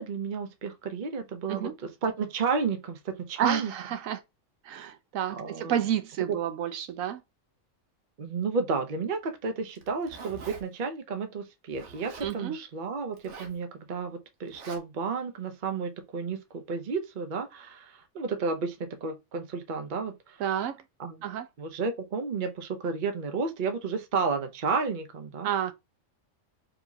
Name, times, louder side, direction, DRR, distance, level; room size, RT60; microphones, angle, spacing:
voice 1, 0.0-3.7 5.3-5.9 6.3-6.4 8.2-20.4 21.0-21.2 21.6-25.5, right 5 dB, 45° right, 0.8 m, -32 dB
voice 2, 3.4-4.2 4.6-7.2 12.2-12.6 20.4-20.8 21.2-21.5 25.4-25.7, right 10 dB, 85° right, 1.0 m, -30 dB
Zipper (clothing), 9.7-10.6 11.7-12.3 13.1-13.6 14.5-14.8, right 4 dB, 65° right, 1.1 m, -45 dB
4.6 x 3.1 x 2.7 m
omnidirectional pair, 1.4 m